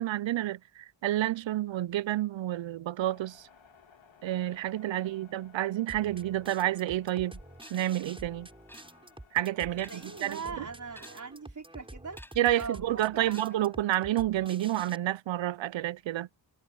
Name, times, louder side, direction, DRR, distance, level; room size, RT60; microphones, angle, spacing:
voice 1, 0.0-3.5 4.2-7.4 7.7-8.5 9.3-10.6 12.4-16.3, right 13 dB, 80° right, 0.6 m, -30 dB
sound 1, 3.0-10.7, left 6 dB, 85° left, 3.3 m, -60 dB
voice 2, 4.9-5.3 9.8-12.2 12.5-12.9 13.1-13.6, right 5 dB, 40° right, 4.7 m, -41 dB
sound 2, 5.9-15.0, right 1 dB, 10° right, 6.9 m, -48 dB
sound 3, 7.6-8.0 8.7-9.3 9.6-10.2 10.9-11.4 12.1-12.6 13.3-13.8, left 1 dB, 5° left, 6.4 m, -54 dB
wide cardioid pair, 145°, 45 cm